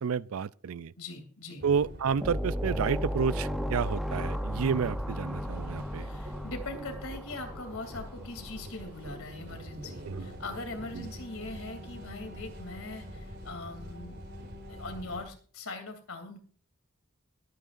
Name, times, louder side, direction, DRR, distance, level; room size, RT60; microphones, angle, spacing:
voice 1, 0.0-0.9 1.6-6.1 10.1-10.3 10.9-11.1, right 6 dB, 70° right, 0.4 m, -30 dB
voice 2, 1.0-1.6 6.0-14.2 14.7-16.4, left 2 dB, 65° left, 2.9 m, -41 dB
sound 1, 1.6-15.3, equal, 50° right, 3.9 m, -44 dB
sound 2, 2.2-8.7, equal, ahead, 0.7 m, -35 dB
22.0 x 9.2 x 2.5 m
head